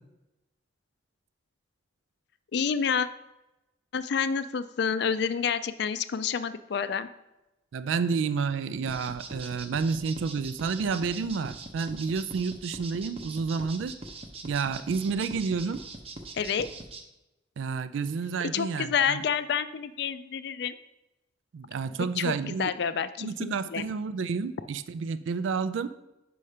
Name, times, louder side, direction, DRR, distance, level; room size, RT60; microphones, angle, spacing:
voice 1, 2.5-3.1 3.9-7.1 16.3-16.7 18.5-20.8 22.0-23.8, left 7 dB, 60° left, 13 dB, 0.4 m, -29 dB
voice 2, 7.7-14.0 14.4-15.8 17.6-19.2 21.5-22.7 23.2-25.9, right 5 dB, 80° right, 13 dB, 0.4 m, -30 dB
sound 1, 8.9-17.0, right 2 dB, 30° right, 0.7 m, -42 dB
5.6 x 5.4 x 4.9 m, 0.95 s
head